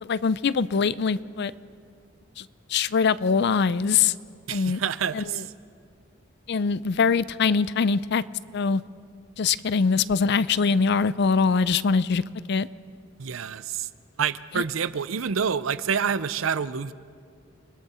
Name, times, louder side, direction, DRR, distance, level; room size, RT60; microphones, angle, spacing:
voice 1, 0.0-1.5 2.4-4.1 4.5-4.8 5.1-5.4 6.5-8.2 8.5-8.8 9.4-12.2 12.5-12.7 14.5-14.6, left 5 dB, 55° left, 18 dB, 0.4 m, -23 dB
voice 2, 4.5-5.4 13.2-13.9 14.2-16.9, right 7 dB, 75° right, 16 dB, 0.6 m, -27 dB
30.0 x 20.0 x 4.3 m, 2.2 s
head